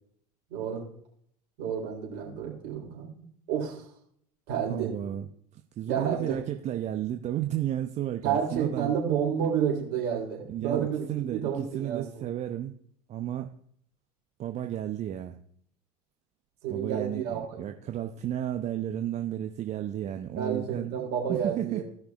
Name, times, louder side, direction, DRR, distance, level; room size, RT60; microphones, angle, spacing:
voice 1, 0.5-0.8 1.6-3.1 3.5-3.8 4.5-4.9 5.9-6.4 8.2-12.3 16.6-17.7 20.3-21.8, right 8 dB, 55° right, -1 dB, 3.7 m, -30 dB
voice 2, 4.7-5.3 5.5-9.0 10.5-12.8 13.1-13.5 14.4-15.4 16.7-21.8, right 11 dB, 35° right, 6 dB, 0.7 m, -33 dB
17.0 x 5.9 x 2.4 m, 0.63 s
hypercardioid pair, 80°, 20 cm